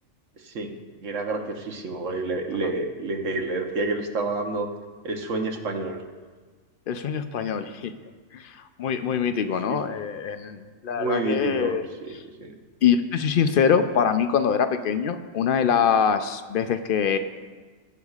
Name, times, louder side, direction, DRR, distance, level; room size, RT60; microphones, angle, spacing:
voice 1, 1.0-4.7 5.0-6.0 9.7-10.0 10.9-11.8 12.0-12.5, right 3 dB, 70° right, 4 dB, 1.3 m, -29 dB
voice 2, 6.9-7.9 8.3-11.8 12.8-17.2, left 7 dB, 60° left, 9 dB, 0.6 m, -24 dB
19.0 x 8.0 x 2.4 m, 1.5 s
omnidirectional pair, 1.4 m